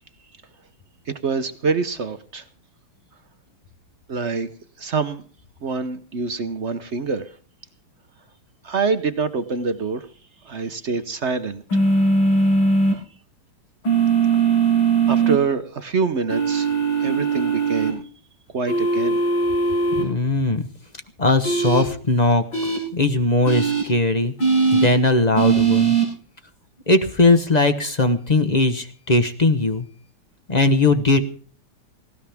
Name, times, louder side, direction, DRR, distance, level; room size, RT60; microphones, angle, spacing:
voice 1, 1.1-2.4 4.1-4.5 4.8-5.2 5.6-7.3 8.6-10.1 10.4-11.6 15.1-16.7 17.0-18.0 18.5-19.2, right 4 dB, 55° right, 10 dB, 0.7 m, -25 dB
sound 1, 11.7-12.9 13.8-15.4 16.3-17.9 18.7-20.0 21.4-21.8 22.5-22.8 23.5-23.8 24.4-24.9 25.4-26.0, right 4 dB, 65° left, 7.9 m, -19 dB
voice 2, 19.9-20.7 21.2-22.4 22.9-24.3 24.7-25.9 26.9-29.9 30.5-31.2, left 2 dB, 35° left, 9 dB, 0.7 m, -19 dB
19.0 x 17.5 x 3.5 m, 0.43 s
omnidirectional pair, 2.4 m